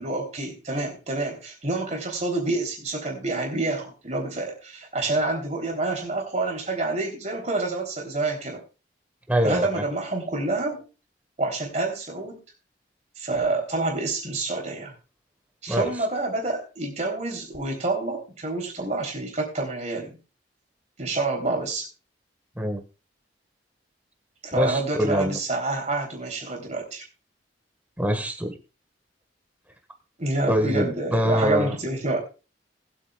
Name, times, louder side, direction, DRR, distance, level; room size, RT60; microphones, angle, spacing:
voice 1, 0.0-8.6 9.4-10.8 11.4-12.4 13.2-14.9 15.6-20.2 21.0-21.9 24.4-27.0 30.2-32.2, right 2 dB, 40° right, 1 dB, 3.4 m, -28 dB
voice 2, 9.3-9.8 15.7-15.9 22.6-22.8 24.6-25.4 28.0-28.6 30.5-31.7, equal, 10° right, 4 dB, 1.6 m, -24 dB
20.5 x 8.4 x 2.4 m, 0.32 s
head